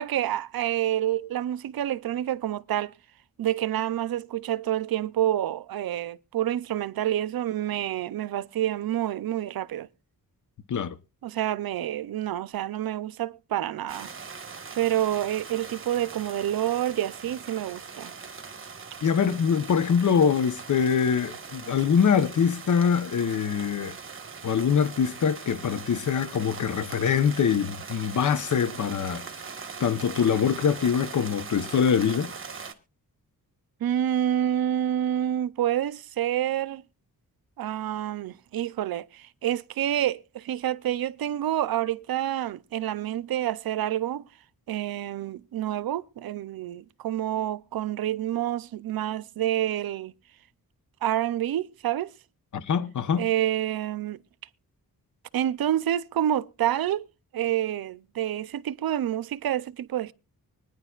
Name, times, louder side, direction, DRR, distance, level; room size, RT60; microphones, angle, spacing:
voice 1, 0.0-2.9 3.4-9.9 11.2-14.1 14.7-18.1 33.8-36.8 37.6-44.2 44.7-50.1 51.0-52.1 53.2-54.2 55.3-57.1 57.3-60.1, right 12 dB, 80° right, 0.6 m, -28 dB
sound 1, 13.9-32.7, right 5 dB, 35° right, 1.4 m, -41 dB
voice 2, 19.0-23.9 24.4-29.2 29.8-32.3 52.5-53.3, left 7 dB, 55° left, 0.9 m, -24 dB
24.5 x 9.6 x 2.4 m
wide cardioid pair, 145°, 35 cm